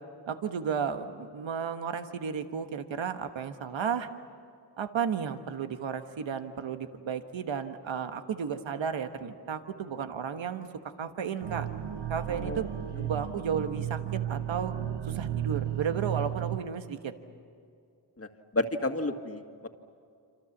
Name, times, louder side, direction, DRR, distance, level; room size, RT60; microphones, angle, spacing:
voice 1, 0.3-4.1 4.8-10.7 11.0-11.7 12.1-12.7 13.0-14.7 15.1-17.1, right 7 dB, 85° right, 8 dB, 1.4 m, -33 dB
sound 1, 11.4-16.6, right 11 dB, 65° right, 1.1 m, -34 dB
voice 2, 12.3-12.6 13.0-13.1 18.2-19.7, left 2 dB, 30° left, 6 dB, 2.1 m, -32 dB
27.0 x 26.5 x 7.3 m, 2.4 s
cardioid pair, 50°, 45 cm